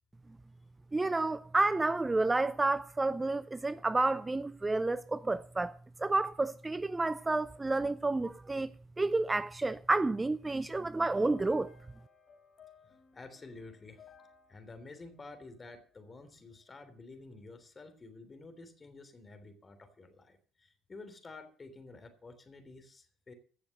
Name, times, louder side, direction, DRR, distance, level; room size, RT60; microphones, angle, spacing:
voice 1, 0.9-11.7, right 2 dB, 20° right, 0.6 m, -30 dB
sound 1, 10.8-16.1, left 7 dB, 50° left, 5.4 m, -57 dB
voice 2, 12.8-14.0 14.5-23.3, left 3 dB, 30° left, 3.3 m, -51 dB
16.0 x 6.9 x 6.6 m
hypercardioid pair, 60°, 0 cm